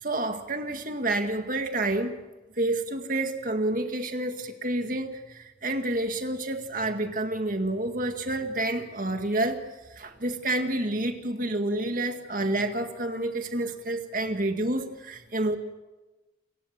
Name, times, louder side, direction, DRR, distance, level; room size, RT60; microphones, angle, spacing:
voice 1, 0.0-2.1 2.6-9.6 10.0-15.6, right 1 dB, 45° right, 6 dB, 2.0 m, -29 dB
29.0 x 16.0 x 7.5 m, 1.1 s
head